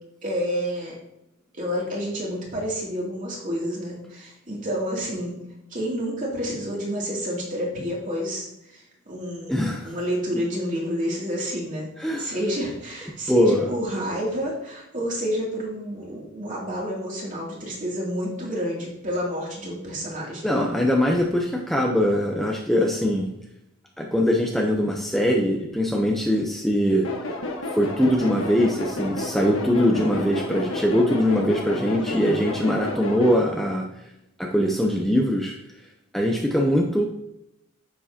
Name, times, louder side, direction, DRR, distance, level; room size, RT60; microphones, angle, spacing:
voice 1, 0.2-0.9 1.5-5.4 5.7-20.4 32.0-32.4, equal, 40° right, -3 dB, 2.7 m, -29 dB
voice 2, 9.5-9.9 12.0-12.3 13.3-13.7 20.4-23.3 24.0-27.0 27.7-33.8 34.4-35.6 36.1-37.1, equal, ahead, 0 dB, 0.7 m, -22 dB
sound 1, 27.0-33.4, left 1 dB, 75° left, 1.3 m, -31 dB
10.0 x 7.2 x 2.9 m, 0.84 s
head